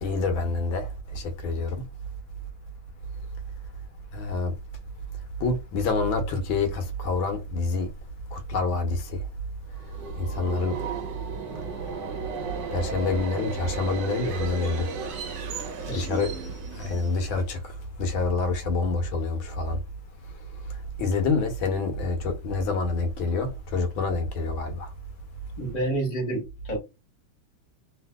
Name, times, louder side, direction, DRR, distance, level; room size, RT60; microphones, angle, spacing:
voice 1, 0.0-1.8 4.1-4.5 5.4-7.9 8.3-9.2 10.1-10.8 12.7-14.9 15.9-16.3 16.8-17.6 18.0-19.8 21.0-24.9, left 3 dB, 80° left, 1.5 m, -27 dB
Subway metro underground, 9.7-17.5, right 5 dB, 70° right, 1.1 m, -35 dB
voice 2, 15.9-16.2 25.6-26.8, right 2 dB, 25° left, 1.0 m, -29 dB
3.3 x 2.7 x 2.2 m
omnidirectional pair, 2.2 m